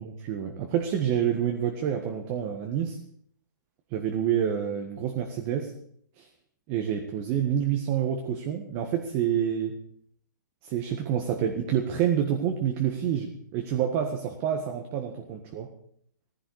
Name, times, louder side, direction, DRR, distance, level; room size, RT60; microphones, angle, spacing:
voice 1, 0.0-3.0 3.9-5.7 6.2-6.3 6.7-9.8 10.6-15.7, right 9 dB, 35° right, 4 dB, 1.7 m, -28 dB
16.0 x 15.0 x 4.9 m, 0.65 s
hypercardioid pair, 140°, 10 cm